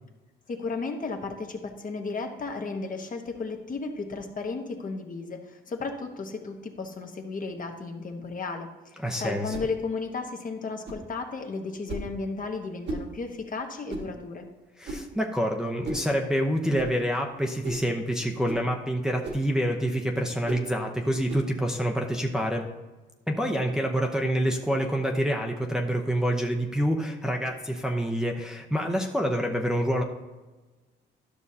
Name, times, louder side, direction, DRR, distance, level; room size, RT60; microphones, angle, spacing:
voice 1, 0.5-14.5, left 4 dB, 45° left, 3 dB, 1.2 m, -34 dB
voice 2, 9.0-9.5 14.8-22.7 23.3-30.0, equal, 5° right, 0 dB, 0.8 m, -27 dB
sound 1, 9.5-9.7 10.8-11.1 11.9-12.1 12.8-13.1 13.9-14.1 14.8-15.1 15.8-16.1 16.7-16.9 17.6-17.9 18.4-18.7 19.2-19.5 20.4-20.7 21.3-21.5, right 2 dB, 60° right, 1.7 m, -35 dB
12.0 x 6.2 x 2.8 m, 1.2 s
cardioid pair, 90°, 20 cm